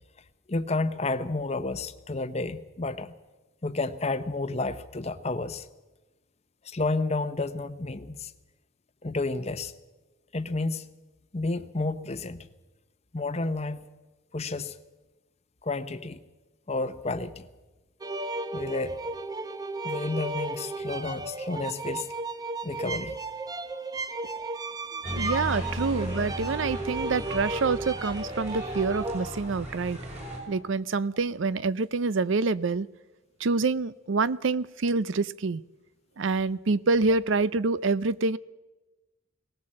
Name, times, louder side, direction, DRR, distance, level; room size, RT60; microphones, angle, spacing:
voice 1, 0.5-3.2 3.6-5.7 6.6-8.3 9.0-9.7 10.3-10.9 11.3-12.5 13.1-13.9 14.3-14.7 15.6-16.2 16.7-17.4 18.5-19.0 19.8-22.1 22.6-23.2, left 3 dB, 30° left, 10 dB, 0.8 m, -31 dB
sound 1, 18.0-29.3, right 2 dB, 20° right, 0.8 m, -35 dB
sound 2, 25.0-30.4, equal, 35° right, 5.8 m, -35 dB
voice 2, 25.1-30.0 30.5-32.9 33.4-35.6 36.2-38.4, right 4 dB, 70° right, 19 dB, 0.5 m, -26 dB
19.0 x 18.0 x 7.6 m, 1.1 s
head